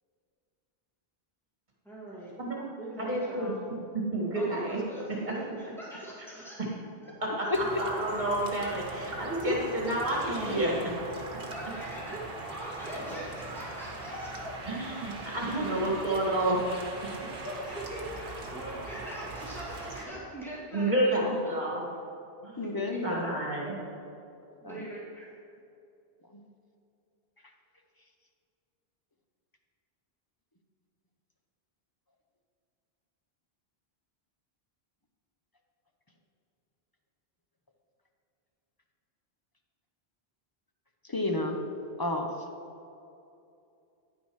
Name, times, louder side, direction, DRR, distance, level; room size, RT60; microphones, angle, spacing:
voice 1, 1.8-2.3 2.8-3.6 4.3-6.7 7.0-7.1 7.4-7.6 11.5-12.2 12.5-14.3 17.4-21.6 24.6-25.4, right 1 dB, ahead, -7 dB, 2.2 m, -42 dB
voice 2, 2.4-2.7 3.0-3.5 3.9-4.8 5.3-5.4 7.2-7.5 7.8-11.0 14.7-16.6 20.7-21.8 22.4-22.5 23.0-23.8, right 1 dB, 45° right, -4 dB, 2.1 m, -29 dB
sound 1, 7.5-20.1, right 2 dB, 65° right, 1.3 m, -41 dB
voice 3, 22.6-23.4 24.6-24.9 41.1-41.6 42.0-42.3, left 2 dB, 25° left, 3 dB, 0.6 m, -31 dB
10.0 x 9.5 x 3.1 m, 2.7 s
omnidirectional pair, 1.0 m